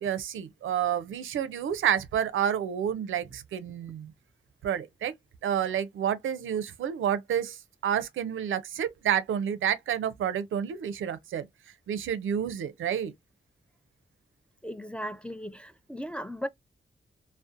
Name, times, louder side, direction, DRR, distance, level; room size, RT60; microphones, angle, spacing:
voice 1, 0.0-4.1 4.6-5.1 5.4-11.5 11.9-13.1, right 9 dB, 75° right, 0.4 m, -29 dB
voice 2, 14.6-16.5, equal, 5° left, 0.3 m, -37 dB
2.5 x 2.0 x 2.3 m
cardioid pair, 50°, 20 cm